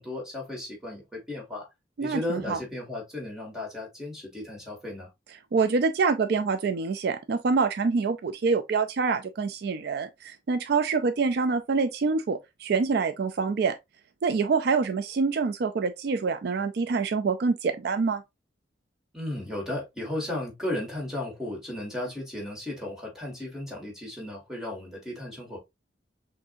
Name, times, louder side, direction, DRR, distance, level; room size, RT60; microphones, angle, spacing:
voice 1, 0.0-1.7 2.0-5.1 19.1-25.6, left 1 dB, 5° right, 1.8 m, -35 dB
voice 2, 2.0-2.6 5.5-13.7 14.2-18.2, right 4 dB, 55° right, 0.4 m, -26 dB
6.0 x 2.6 x 2.5 m
head